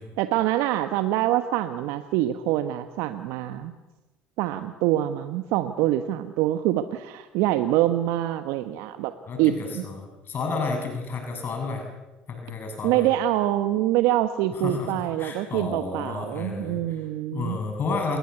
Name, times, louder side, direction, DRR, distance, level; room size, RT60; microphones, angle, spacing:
voice 1, 0.2-3.7 4.4-9.1 9.4-9.8 12.8-17.6, right 13 dB, 70° right, 10 dB, 1.2 m, -25 dB
voice 2, 9.3-11.8 12.3-13.1 14.6-16.8 17.3-18.2, left 4 dB, 45° left, 3 dB, 7.3 m, -31 dB
29.5 x 22.0 x 8.2 m, 1.1 s
hypercardioid pair, 60°, 5 cm